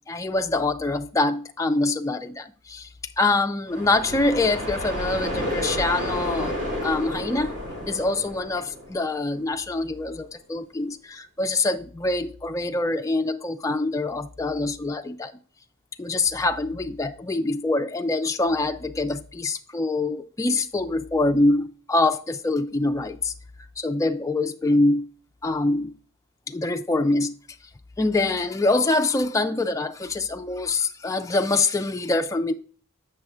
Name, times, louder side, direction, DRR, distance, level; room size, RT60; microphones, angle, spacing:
voice 1, 0.1-2.9 3.2-6.6 6.8-7.5 7.9-15.3 16.0-23.3 23.8-25.1 25.4-25.9 26.5-27.3 28.0-32.5, left 2 dB, 15° left, 5 dB, 0.3 m, -24 dB
sound 1, 3.7-9.4, left 1 dB, 55° right, 2.5 m, -31 dB
7.7 x 6.2 x 3.5 m, 0.42 s
head